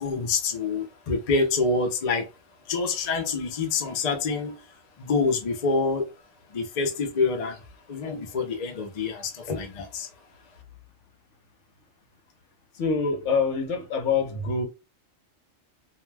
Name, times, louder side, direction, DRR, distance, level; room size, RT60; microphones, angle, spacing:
voice 1, 0.0-2.3 2.7-4.7 5.0-6.1 6.5-10.1, left 4 dB, 50° left, 0.4 m, -27 dB
voice 2, 12.7-14.6, left 5 dB, 65° left, 1.0 m, -25 dB
2.4 x 2.2 x 3.2 m
omnidirectional pair, 1.4 m